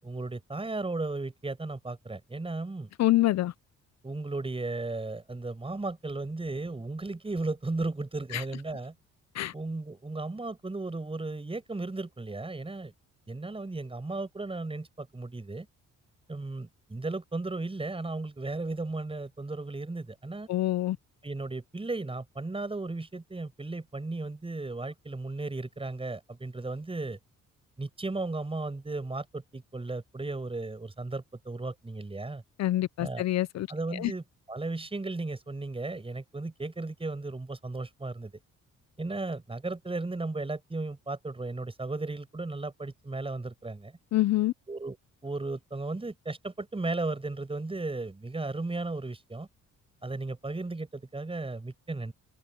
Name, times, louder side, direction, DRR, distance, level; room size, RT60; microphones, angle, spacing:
voice 1, 0.0-2.9 4.0-8.9 9.5-12.9 13.3-15.7 16.3-20.5 21.2-27.2 27.8-32.4 33.0-33.2 33.7-34.2 34.5-38.3 39.0-43.9 44.7-45.0 45.2-49.5 50.0-52.1, right 2 dB, 20° right, 5.8 m, -35 dB
voice 2, 3.0-3.5 8.3-8.4 9.3-9.5 20.5-21.0 32.6-34.1 44.1-44.5, left 15 dB, 60° left, 0.5 m, -26 dB
cardioid pair, 90°, 30 cm